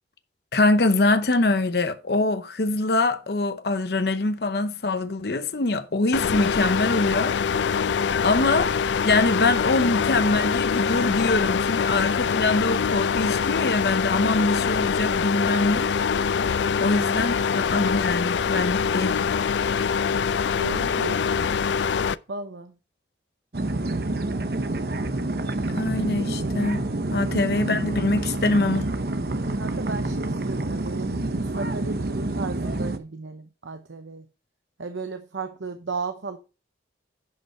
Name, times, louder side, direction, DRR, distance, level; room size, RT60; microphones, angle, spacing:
voice 1, 0.5-7.4 8.2-8.7 9.0-15.9 16.8-19.2 25.8-28.9, left 2 dB, 60° left, 0.8 m, -24 dB
sound 1, 6.1-22.2, left 6 dB, 80° left, 0.4 m, -24 dB
voice 2, 20.6-21.7 22.3-22.7 25.7-25.8 27.2-27.3 29.5-31.1 31.5-34.3 34.8-36.4, right 4 dB, 90° right, 0.8 m, -35 dB
sound 2, 23.5-33.0, right 2 dB, 55° right, 0.9 m, -28 dB
10.5 x 5.5 x 4.4 m
head